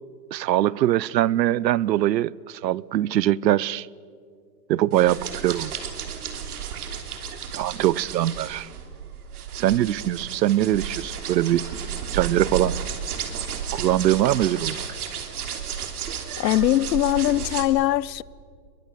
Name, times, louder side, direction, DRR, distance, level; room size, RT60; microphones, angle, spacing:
voice 1, 0.3-3.9 4.7-5.7 7.5-8.7 9.5-11.7 12.1-12.7 13.7-14.8, right 13 dB, 85° right, 0.8 m, -22 dB
sound 1, 4.9-17.6, right 7 dB, 65° right, 3.2 m, -33 dB
voice 2, 16.4-18.2, left 14 dB, 85° left, 0.7 m, -21 dB
30.0 x 22.5 x 6.7 m
supercardioid pair, 180°, 49 cm